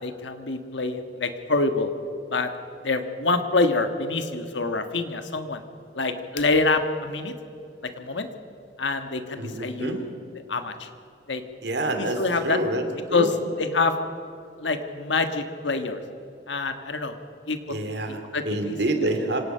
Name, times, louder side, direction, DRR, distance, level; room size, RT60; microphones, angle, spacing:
voice 1, 0.0-1.9 2.3-2.5 2.8-5.6 5.9-7.3 8.0-8.3 8.8-10.1 10.5-10.9 11.3-11.4 12.0-12.6 13.1-13.3 13.6-13.9 14.6-16.0 16.5-17.2 17.5-17.6 18.1-19.1, left 3 dB, 80° left, 8 dB, 1.5 m, -26 dB
voice 2, 9.4-10.0 11.6-12.8 13.1-13.3 17.7-19.4, right 1 dB, 65° right, 6 dB, 2.7 m, -27 dB
25.5 x 18.0 x 5.6 m, 2.7 s
head